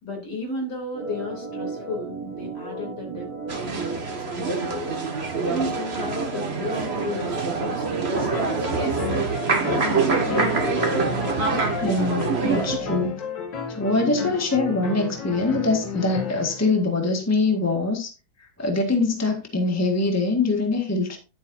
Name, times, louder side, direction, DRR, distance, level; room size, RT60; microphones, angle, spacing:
voice 1, 0.0-4.9 5.4-8.9 9.3-9.6, left 2 dB, 60° left, 4.0 m, -34 dB
Organ, 0.9-13.1, right 5 dB, 55° right, 1.9 m, -35 dB
sound 1, 3.5-12.8, right 4 dB, 35° right, 1.8 m, -25 dB
sound 2, 8.2-16.7, left 5 dB, 75° left, 2.4 m, -32 dB
voice 2, 11.8-13.1 13.7-18.1 18.4-21.2, left 3 dB, 10° left, 1.7 m, -23 dB
11.5 x 7.9 x 2.7 m
omnidirectional pair, 2.0 m